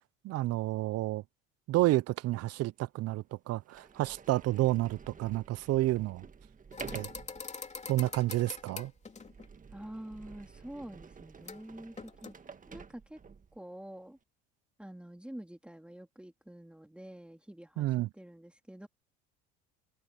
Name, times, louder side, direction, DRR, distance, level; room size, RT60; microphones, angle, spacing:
voice 1, 0.2-1.2 1.7-6.3 6.9-7.1 7.9-8.9 17.8-18.1, right 16 dB, 55° right, 0.9 m, -30 dB
Sliding door, 2.3-2.4 3.1-3.2 3.7-13.6, right 5 dB, 25° right, 1.8 m, -50 dB
sound 1, 6.7-9.5 11.4-11.6 11.9-12.3, left 4 dB, 25° left, 3.2 m, -44 dB
voice 2, 9.7-12.3 12.7-13.2 13.5-14.2 14.8-18.9, right 1 dB, 5° right, 3.6 m, -47 dB
open air
hypercardioid pair, 75°, 29 cm